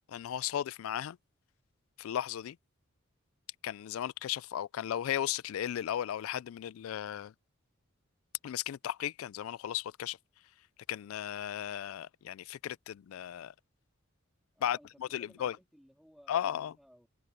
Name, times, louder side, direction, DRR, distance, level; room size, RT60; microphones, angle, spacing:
voice 1, 0.1-1.2 2.0-2.6 3.6-7.3 8.4-10.2 10.9-13.5 14.6-15.6 16.3-16.7, left 10 dB, 75° left, 0.3 m, -35 dB
voice 2, 14.5-17.1, equal, ahead, 3.1 m, -60 dB
open air
head